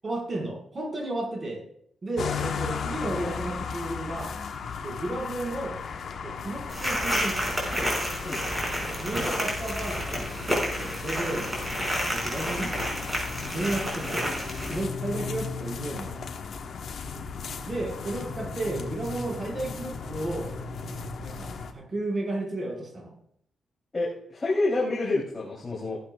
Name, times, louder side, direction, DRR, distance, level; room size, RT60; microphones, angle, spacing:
voice 1, 0.0-1.6 2.0-4.3 4.8-5.8 6.2-7.8 9.0-12.7 13.5-14.3 14.7-16.2 17.7-20.5 21.2-23.2, right 2 dB, 35° right, 1 dB, 4.8 m, -33 dB
sound 1, 2.2-21.7, left 5 dB, 70° left, 1.2 m, -36 dB
sound 2, 6.7-14.8, equal, 15° right, 5.6 m, -30 dB
voice 2, 23.9-26.0, left 2 dB, 30° left, -5 dB, 3.2 m, -28 dB
15.5 x 12.0 x 2.4 m, 0.69 s
cardioid pair, 85°, 0 cm